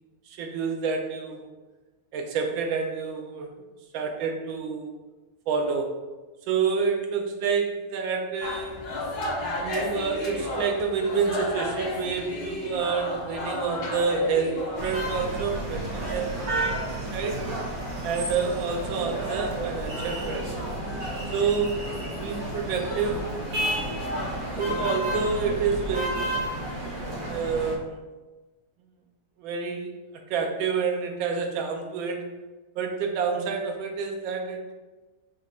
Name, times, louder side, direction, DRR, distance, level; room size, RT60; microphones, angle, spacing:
voice 1, 0.3-1.5 2.1-3.5 3.9-4.9 5.5-6.0 6.5-8.8 9.4-16.4 17.1-17.4 18.0-20.5 21.3-21.8 22.2-23.3 24.2-26.6 27.3-28.0 29.4-29.9 30.3-32.3 32.8-34.7, right 5 dB, 90° right, 3 dB, 1.4 m, -28 dB
sound 1, 8.4-24.9, left 1 dB, 60° left, 1.3 m, -36 dB
sound 2, 14.7-27.7, right 1 dB, 55° right, 1.3 m, -31 dB
5.3 x 2.4 x 4.1 m, 1.2 s
omnidirectional pair, 2.1 m